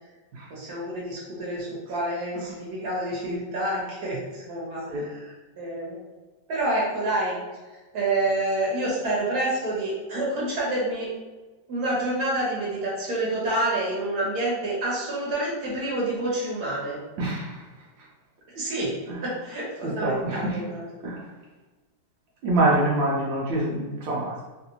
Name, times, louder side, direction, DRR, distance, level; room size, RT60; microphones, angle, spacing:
voice 1, 0.5-6.0 6.5-7.3 7.9-11.1 11.7-17.0 18.5-18.9 19.2-20.8, right 1 dB, 55° right, -6 dB, 1.6 m, -28 dB
voice 2, 19.8-20.6 21.0-21.2 22.4-24.4, right 2 dB, 85° right, -5 dB, 1.4 m, -25 dB
3.5 x 2.5 x 2.8 m, 1.2 s
omnidirectional pair, 2.0 m